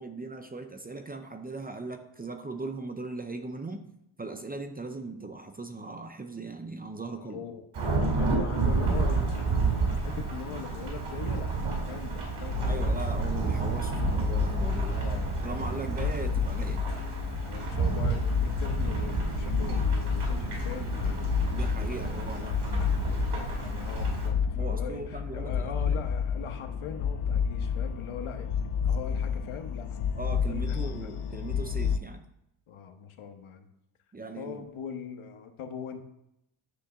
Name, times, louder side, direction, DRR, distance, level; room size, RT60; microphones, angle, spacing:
voice 1, 0.0-3.8 4.2-7.4 12.7-15.0 15.4-16.8 21.5-23.0 24.5-26.0 30.2-32.2 34.1-34.7, right 3 dB, 20° right, 6 dB, 0.6 m, -39 dB
voice 2, 7.0-7.7 8.0-12.9 14.9-16.2 17.4-21.3 22.0-30.0 30.5-31.1 32.7-33.6 34.4-36.0, left 7 dB, 70° left, 6 dB, 1.1 m, -42 dB
Thunderstorm / Rain, 7.7-24.3, right 4 dB, 75° right, 2.6 m, -30 dB
sound 1, 12.5-32.0, left 7 dB, 55° left, 0.6 m, -31 dB
10.0 x 3.4 x 6.7 m, 0.81 s
wide cardioid pair, 130°, 50 cm